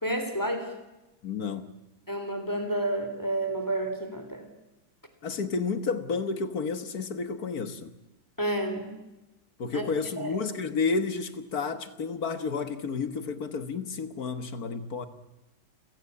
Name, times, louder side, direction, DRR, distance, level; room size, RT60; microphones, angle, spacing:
voice 1, 0.0-0.7 2.1-4.4 8.4-8.9 9.7-9.9 10.2-10.4, right 1 dB, 10° left, 3.3 m, -30 dB
voice 2, 1.2-1.7 5.2-8.0 9.6-15.1, left 4 dB, 50° left, 1.7 m, -31 dB
30.0 x 16.5 x 8.6 m
omnidirectional pair, 2.2 m